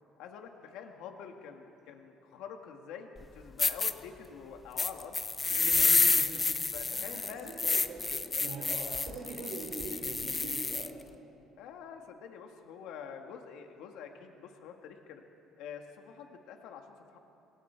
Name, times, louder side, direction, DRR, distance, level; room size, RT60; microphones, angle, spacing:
voice 1, 0.2-5.2 5.8-6.2 6.7-7.6 8.3-8.7 11.6-15.2 15.6-17.2, left 7 dB, 80° left, 4 dB, 1.7 m, -46 dB
sound 1, 3.2-3.3 3.6-3.9 4.8-10.9, left 3 dB, 15° left, 0.7 m, -29 dB
voice 2, 5.5-6.6 6.9-10.9, right 3 dB, 60° right, -3 dB, 4.4 m, -43 dB
26.0 x 23.5 x 4.6 m, 2.9 s
cardioid pair, 150°, 0 cm